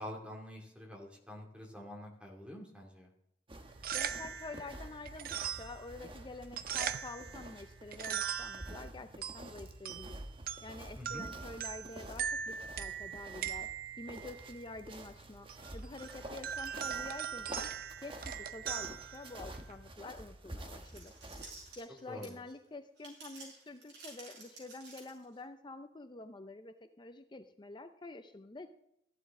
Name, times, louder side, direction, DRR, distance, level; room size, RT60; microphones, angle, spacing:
voice 1, 0.0-3.1 10.9-11.2 22.1-22.4, left 1 dB, 5° right, 0 dB, 2.5 m, -46 dB
sound 1, 3.5-21.7, right 1 dB, 30° right, 1.2 m, -49 dB
sound 2, 3.6-19.9, right 8 dB, 55° right, 0.6 m, -41 dB
voice 2, 3.9-10.2 10.6-13.7 14.0-17.7 18.0-21.1 21.8-28.7, left 2 dB, 25° left, 8 dB, 0.6 m, -48 dB
sound 3, 20.8-22.5 23.0-25.4, right 3 dB, 75° right, 5.7 m, -52 dB
14.5 x 11.5 x 3.7 m, 0.77 s
head